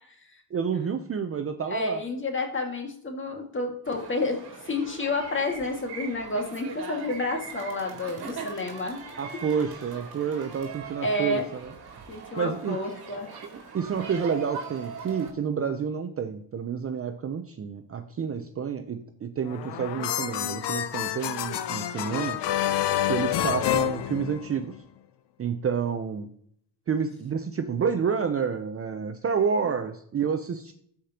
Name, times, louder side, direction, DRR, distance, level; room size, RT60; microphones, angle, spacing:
voice 1, 0.5-2.0 9.2-11.7 12.4-12.8 13.7-22.4 23.1-24.7 25.4-26.3 26.9-30.7, right 6 dB, 30° right, 8 dB, 0.6 m, -29 dB
voice 2, 1.7-4.4 4.7-9.0 11.0-11.5 12.1-13.3, left 2 dB, 25° left, 3 dB, 2.0 m, -30 dB
sound 1, 3.8-15.3, right 6 dB, 55° right, 2.8 m, -41 dB
sound 2, 19.5-24.8, left 12 dB, 65° left, 0.8 m, -28 dB
13.5 x 5.0 x 2.9 m, 0.64 s
cardioid pair, 115°, 44 cm